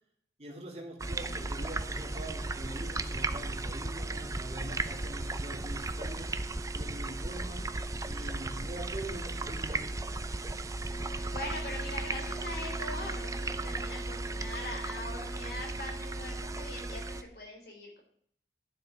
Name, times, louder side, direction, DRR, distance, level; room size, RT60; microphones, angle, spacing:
voice 1, 0.4-6.3 6.7-7.7 8.1-10.0, right 1 dB, 35° right, 0 dB, 2.8 m, -44 dB
voice 2, 1.0-1.4 11.3-18.0, left 1 dB, 60° left, 0 dB, 4.2 m, -42 dB
sound 1, 1.0-17.2, right 2 dB, 20° right, 0.6 m, -35 dB
12.0 x 7.6 x 5.0 m, 0.63 s
head